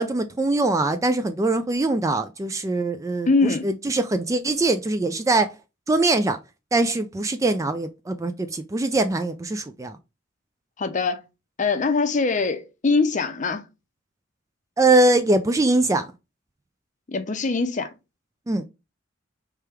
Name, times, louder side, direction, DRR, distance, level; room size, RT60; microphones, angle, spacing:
voice 1, 0.0-5.5 5.9-6.4 6.7-10.0 14.8-16.1 18.5-18.6, right 2 dB, 15° right, 0.3 m, -22 dB
voice 2, 3.3-3.7 10.8-11.2 11.6-13.7 17.1-17.9, left 4 dB, 40° left, 0.6 m, -23 dB
3.4 x 3.3 x 4.6 m
head